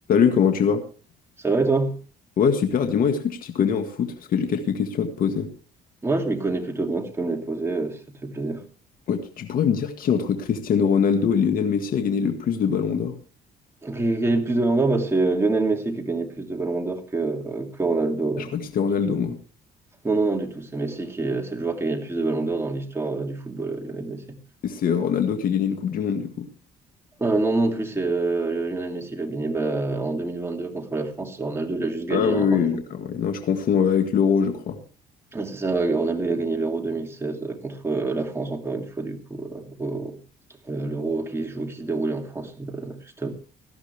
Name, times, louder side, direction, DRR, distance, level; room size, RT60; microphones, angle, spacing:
voice 1, 0.1-0.8 2.4-5.5 9.1-13.1 18.4-19.4 24.6-26.5 32.1-34.8, left 7 dB, 55° left, 6 dB, 1.8 m, -23 dB
voice 2, 1.4-2.0 6.0-8.6 13.8-18.5 20.0-24.4 27.2-32.8 35.3-40.2 40.7-43.3, right 3 dB, 15° right, 3 dB, 2.6 m, -26 dB
18.0 x 13.5 x 3.4 m, 0.36 s
cardioid pair, 110°, 17 cm